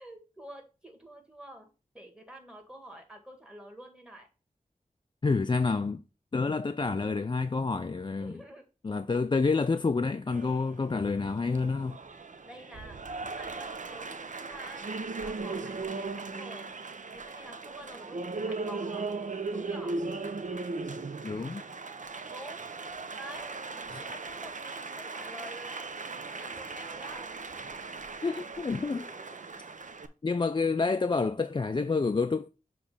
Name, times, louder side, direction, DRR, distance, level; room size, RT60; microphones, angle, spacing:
voice 1, 0.0-1.7 1.9-4.3 8.2-8.7 12.4-16.7 17.1-19.1 19.5-19.9 22.3-22.7 23.1-23.5 24.0-25.9 26.3-27.3 28.9-29.6 30.0-30.1, equal, 5° right, 2.0 m, -48 dB
voice 2, 5.2-6.0 6.3-8.4 8.8-12.0 21.2-21.6 23.9-24.0 28.2-29.1 30.2-32.5, left 4 dB, 35° left, 0.4 m, -28 dB
Applause, 10.3-30.1, right 3 dB, 60° right, 0.6 m, -38 dB
6.9 x 3.2 x 5.3 m
wide cardioid pair, 55°, 15 cm